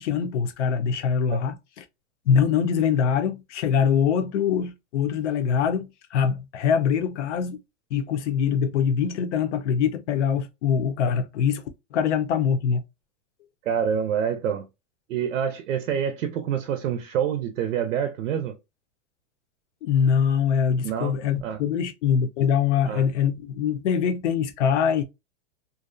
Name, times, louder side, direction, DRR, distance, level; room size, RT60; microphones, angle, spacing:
voice 1, 0.0-1.8 2.3-7.6 7.9-11.6 11.9-12.8 19.8-25.0, left 7 dB, 65° left, 0.6 m, -23 dB
voice 2, 13.6-14.7 15.1-18.6 20.8-21.1 21.4-21.6 22.8-23.0, right 8 dB, 85° right, 0.6 m, -26 dB
2.5 x 2.0 x 2.5 m
supercardioid pair, 160°, 38 cm